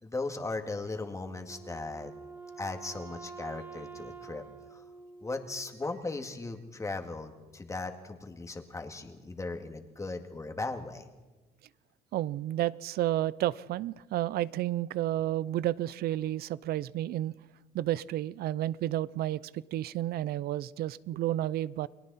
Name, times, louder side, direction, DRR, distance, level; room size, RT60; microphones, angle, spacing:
voice 1, 0.0-2.1 2.6-4.4 4.7-4.8 5.2-11.0, left 3 dB, 20° left, 5 dB, 2.1 m, -37 dB
Wind instrument woodwind instrument, 1.5-6.0, right 5 dB, 10° right, 1.2 m, -47 dB
voice 2, 12.1-17.3 17.7-21.9, right 13 dB, 65° right, 21 dB, 0.6 m, -31 dB
30.0 x 21.0 x 4.2 m, 1.2 s
cardioid pair, 110°, 17 cm